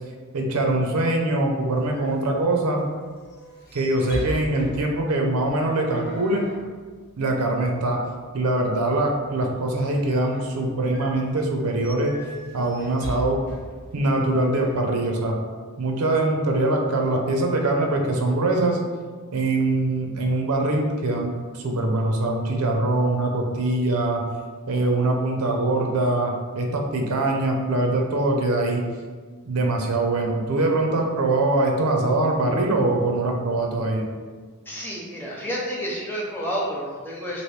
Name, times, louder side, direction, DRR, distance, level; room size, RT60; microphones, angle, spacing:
voice 1, 0.3-2.8 3.7-6.5 7.2-8.0 8.3-12.1 12.5-13.4 13.9-15.4 15.8-18.8 19.3-24.2 24.7-28.9 29.4-34.1, right 2 dB, 90° right, 2 dB, 0.5 m, -23 dB
sound 1, 1.7-14.8, equal, 50° left, 0.9 m, -40 dB
voice 2, 34.7-37.4, equal, 10° left, -4 dB, 0.6 m, -30 dB
3.0 x 2.6 x 3.1 m, 1.5 s
head